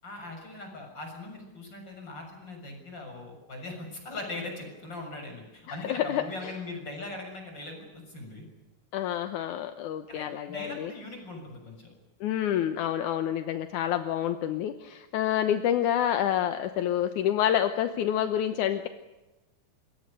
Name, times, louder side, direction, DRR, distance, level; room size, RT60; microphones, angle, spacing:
voice 1, 0.0-8.5 10.1-11.9, left 2 dB, 35° left, 3 dB, 7.5 m, -40 dB
voice 2, 5.7-6.2 8.9-10.9 12.2-18.9, left 10 dB, 75° left, 9 dB, 2.4 m, -28 dB
27.0 x 22.0 x 6.8 m, 1.1 s
omnidirectional pair, 3.6 m